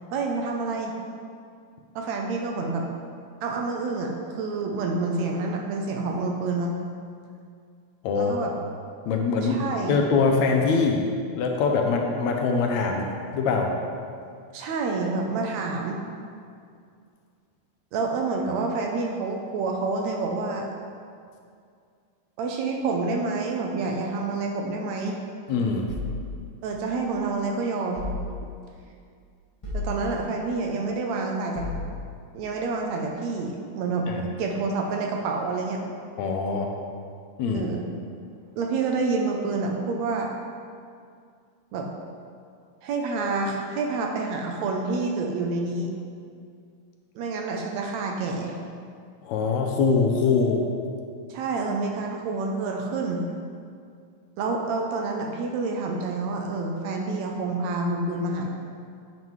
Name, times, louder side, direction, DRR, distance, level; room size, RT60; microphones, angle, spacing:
voice 1, 0.1-0.9 2.0-2.9 3.4-6.8 8.2-8.5 9.4-10.0 14.5-16.0 17.9-20.7 22.4-25.2 26.6-28.1 29.7-31.7 32.3-34.1 34.4-35.8 37.5-37.8 38.6-40.3 41.7-41.9 42.8-45.9 47.2-48.6 51.3-53.2 54.4-58.5, right 3 dB, 75° right, 1 dB, 1.8 m, -28 dB
voice 2, 9.1-11.1 11.4-13.8 25.5-25.9 34.1-34.3 36.2-36.7 37.4-37.7 49.2-50.7, left 4 dB, 80° left, 2 dB, 1.8 m, -23 dB
sound 1, 25.9-27.3 27.9-28.8 29.6-30.5 31.5-32.4, left 2 dB, 45° left, 0.4 m, -35 dB
9.2 x 5.4 x 3.1 m, 2.3 s
omnidirectional pair, 3.4 m